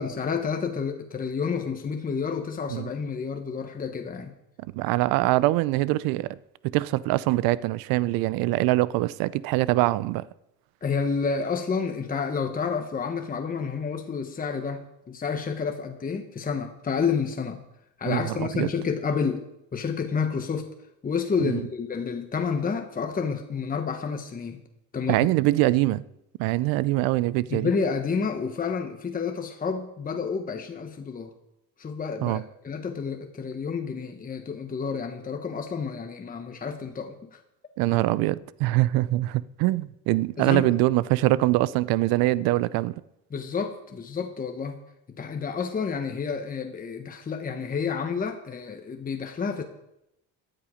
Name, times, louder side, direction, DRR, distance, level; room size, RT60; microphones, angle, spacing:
voice 1, 0.0-4.3 10.8-17.6 18.0-19.4 19.7-20.7 21.0-24.6 24.9-25.3 27.5-31.3 31.8-37.4 40.4-40.6 43.3-44.8 45.1-49.6, left 5 dB, 25° left, 5 dB, 1.2 m, -30 dB
voice 2, 4.7-6.4 6.7-10.2 18.1-18.7 21.4-21.6 25.1-26.0 26.4-27.7 32.2-32.4 37.8-42.9, right 17 dB, 85° right, 20 dB, 0.6 m, -23 dB
14.5 x 10.0 x 5.1 m, 0.85 s
cardioid pair, 110°, 34 cm